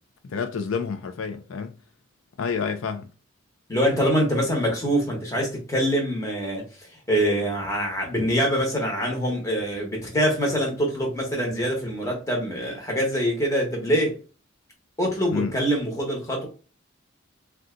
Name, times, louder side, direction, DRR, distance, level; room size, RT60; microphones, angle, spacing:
voice 1, 0.2-1.7 2.4-3.1 15.3-15.5, left 5 dB, 75° left, 0.4 m, -29 dB
voice 2, 3.7-6.7 7.1-14.2 15.0-16.5, equal, 15° left, 1.0 m, -24 dB
2.5 x 2.3 x 3.7 m
head